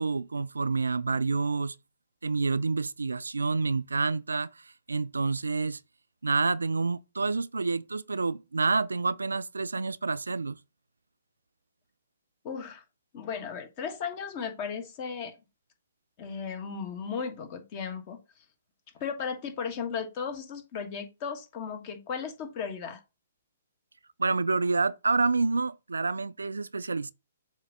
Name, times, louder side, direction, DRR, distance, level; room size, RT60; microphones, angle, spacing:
voice 1, 0.0-1.8 2.2-5.8 6.2-10.6 24.2-27.1, right 4 dB, 90° right, 0.3 m, -28 dB
voice 2, 12.4-12.8 13.1-15.3 16.2-18.2 18.9-23.0, left 6 dB, 40° left, 1.4 m, -35 dB
7.3 x 2.7 x 5.3 m
hypercardioid pair, 130°, 0 cm